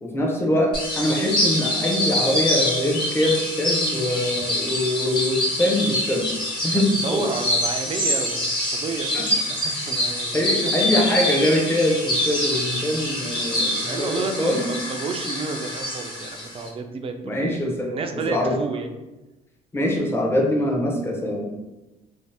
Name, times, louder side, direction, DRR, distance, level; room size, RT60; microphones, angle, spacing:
voice 1, 0.0-6.3 6.6-7.3 9.1-9.2 10.3-14.7 17.2-18.6 19.7-21.5, left 1 dB, 15° left, 0 dB, 0.6 m, -23 dB
sound 1, 0.7-16.7, left 1 dB, 30° left, 1.0 m, -25 dB
voice 2, 6.7-11.1 13.9-18.9, right 4 dB, 35° right, 6 dB, 0.3 m, -31 dB
2.7 x 2.0 x 3.3 m, 1.0 s
cardioid pair, 110°, 17 cm